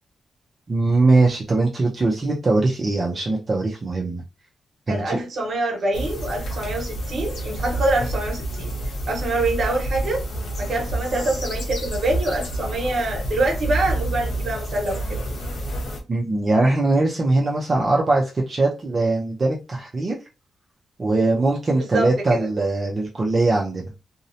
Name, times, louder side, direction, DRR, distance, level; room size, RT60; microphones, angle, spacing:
voice 1, 0.7-4.2 4.9-5.2 16.1-20.2 21.0-23.9, right 2 dB, 35° right, 0.5 m, -21 dB
voice 2, 4.9-10.2 10.6-15.2 21.9-22.1, right 2 dB, 55° right, 1.0 m, -25 dB
sound 1, 5.9-16.0, right 1 dB, 75° left, 0.8 m, -28 dB
2.6 x 2.0 x 2.6 m
cardioid pair, 110°, 0 cm